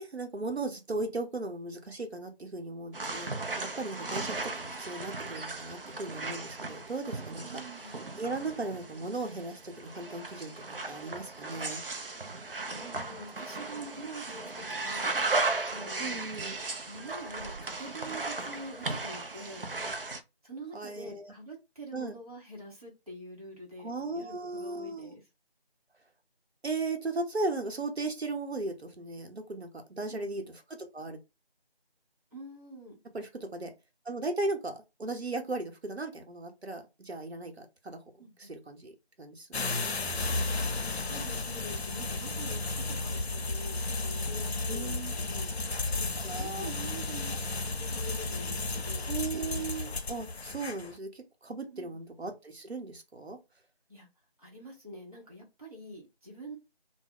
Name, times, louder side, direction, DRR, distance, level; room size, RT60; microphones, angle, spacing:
voice 1, 0.0-7.5 7.7-10.5 10.9-11.8 16.0-16.6 20.7-21.3 21.9-22.2 23.8-25.1 26.6-29.7 30.0-31.2 33.1-33.7 34.1-38.0 38.4-38.9 39.2-39.8 44.7-45.1 46.2-46.7 49.1-53.4, right 3 dB, 80° right, 0.8 m, -37 dB
sound 1, 2.9-20.2, right 3 dB, 60° right, 0.4 m, -36 dB
voice 2, 7.4-7.9 12.6-16.2 16.8-19.7 20.4-25.2 30.1-30.5 32.3-33.0 38.2-38.5 40.2-40.3 41.0-43.2 43.4-45.5 45.9-47.4 47.8-49.1 51.7-52.0 53.9-54.1 54.4-56.6, right 1 dB, 35° right, 0.8 m, -46 dB
sound 2, 39.5-51.0, left 3 dB, 80° left, 0.6 m, -33 dB
2.3 x 2.0 x 3.5 m
figure-of-eight pair, 175°, 32 cm